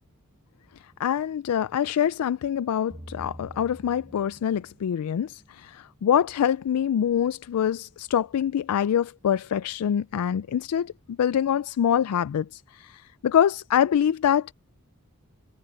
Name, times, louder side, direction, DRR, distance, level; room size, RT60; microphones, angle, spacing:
voice 1, 1.0-10.9 11.2-14.5, left 9 dB, 75° left, 0.3 m, -25 dB
sound 1, 2.9-5.3, equal, 15° right, 1.1 m, -45 dB
head